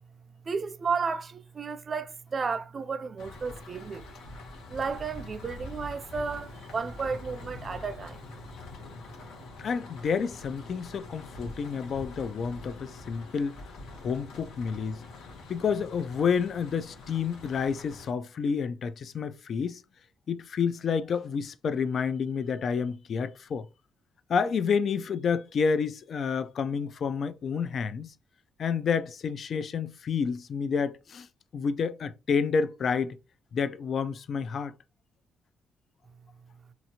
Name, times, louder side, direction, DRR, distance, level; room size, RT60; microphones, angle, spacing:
voice 1, 0.5-4.0 4.7-8.2, right 5 dB, 40° right, 0.4 m, -33 dB
sound 1, 3.2-18.1, left 2 dB, 85° left, 1.0 m, -45 dB
voice 2, 9.6-13.6 14.0-15.0 15.5-19.8 20.3-23.7 24.3-28.1 28.6-31.3 31.5-33.2 33.5-34.7, left 6 dB, 55° left, 0.4 m, -29 dB
2.9 x 2.4 x 2.8 m
cardioid pair, 90°, 0 cm